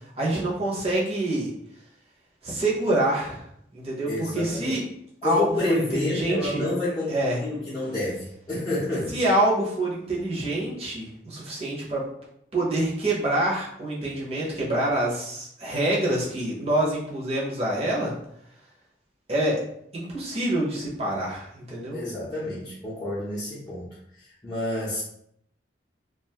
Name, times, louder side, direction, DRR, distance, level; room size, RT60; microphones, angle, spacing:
voice 1, 0.1-1.5 2.4-3.4 3.7-4.8 5.2-6.7 7.1-7.4 9.1-12.0 12.5-18.1 19.3-19.6 19.9-22.0, right 1 dB, 30° right, -5 dB, 0.7 m, -26 dB
voice 2, 4.1-4.7 5.2-9.1 21.9-23.9 24.4-25.0, left 1 dB, 20° left, -11 dB, 0.6 m, -29 dB
2.5 x 2.3 x 2.8 m, 0.73 s
head